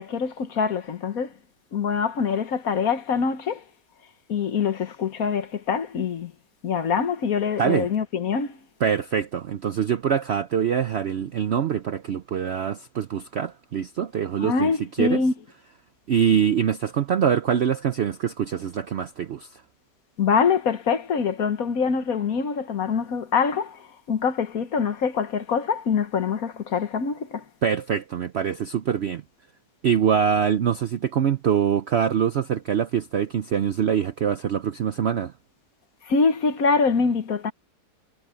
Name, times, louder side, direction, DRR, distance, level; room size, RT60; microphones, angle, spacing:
voice 1, 0.0-1.3 1.7-3.6 4.3-6.3 6.6-8.6 14.4-15.3 20.2-27.4 36.0-37.5, left 5 dB, 60° left, 1.6 m, -24 dB
voice 2, 8.8-14.7 15.0-15.2 16.1-19.5 27.6-29.2 29.8-35.3, right 8 dB, 65° right, 0.6 m, -24 dB
omnidirectional pair, 1.8 m